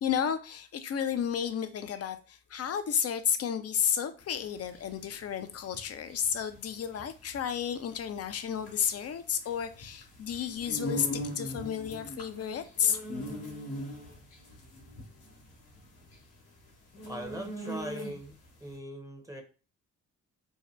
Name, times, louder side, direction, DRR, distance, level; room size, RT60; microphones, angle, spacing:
voice 1, 0.0-13.0, left 8 dB, 40° left, 0.5 m, -32 dB
sound 1, 4.3-18.5, equal, 75° left, 1.0 m, -41 dB
voice 2, 17.1-19.4, equal, 10° right, 0.8 m, -40 dB
2.7 x 2.1 x 3.0 m
hypercardioid pair, 45°, 38 cm